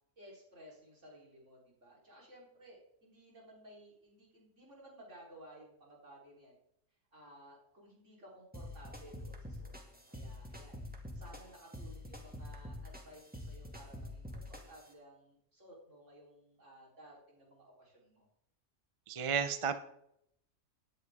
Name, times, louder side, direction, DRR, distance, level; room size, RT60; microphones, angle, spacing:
voice 1, 0.2-6.6 7.1-10.9 11.1-18.3, right 1 dB, 70° right, -3 dB, 4.3 m, -57 dB
sound 1, 8.5-14.9, left 1 dB, 5° right, 2.0 m, -47 dB
voice 2, 19.1-19.8, right 6 dB, 35° right, 11 dB, 0.6 m, -32 dB
17.5 x 10.5 x 3.6 m, 0.75 s
omnidirectional pair, 1.3 m